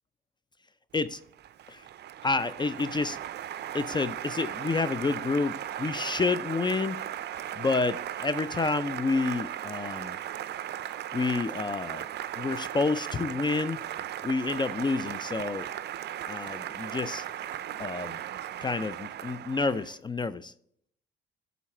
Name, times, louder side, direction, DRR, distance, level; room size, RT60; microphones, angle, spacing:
Applause, 1.1-20.0, right 11 dB, 60° right, 0.5 m, -37 dB
voice 1, 2.2-3.2 3.7-7.0 7.5-10.2 11.1-12.1 12.4-13.8 14.2-15.7 16.2-17.2 17.8-18.2 18.6-20.5, left 3 dB, 25° left, 0.3 m, -29 dB
11.0 x 4.0 x 4.3 m
cardioid pair, 90°, 20 cm